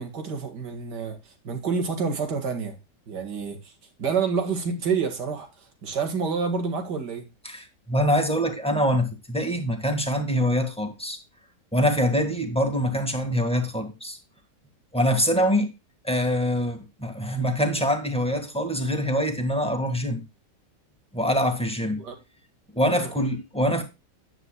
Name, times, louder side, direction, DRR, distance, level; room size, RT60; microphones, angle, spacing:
voice 1, 0.0-2.8 3.1-3.7 4.0-5.5 5.8-7.3 22.0-22.2 22.9-23.3, right 5 dB, 70° right, 2.5 m, -28 dB
voice 2, 7.5-11.2 11.7-14.2 14.9-15.7 16.0-20.2 21.1-22.0 22.8-23.8, equal, 5° left, 1.7 m, -24 dB
9.9 x 9.8 x 2.3 m
omnidirectional pair, 1.9 m